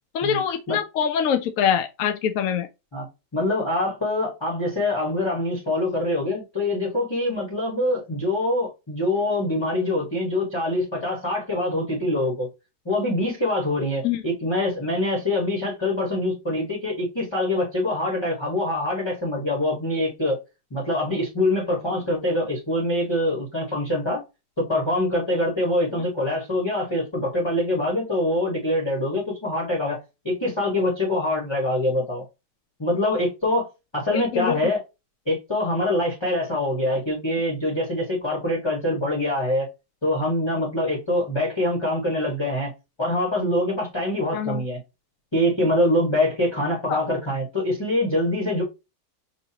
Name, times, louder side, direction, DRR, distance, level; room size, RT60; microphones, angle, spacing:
voice 1, 0.1-2.7 14.0-14.2 34.1-34.6 44.3-44.6 46.9-47.0, left 8 dB, 70° left, 0.8 m, -24 dB
voice 2, 3.3-12.5 12.8-20.4 20.7-24.2 24.6-30.0 30.2-32.2 32.8-33.7 33.9-34.8 35.3-39.7 40.0-42.7 43.0-44.8 45.3-48.6, left 1 dB, 15° left, 1.3 m, -24 dB
5.4 x 2.7 x 2.8 m
omnidirectional pair, 1.8 m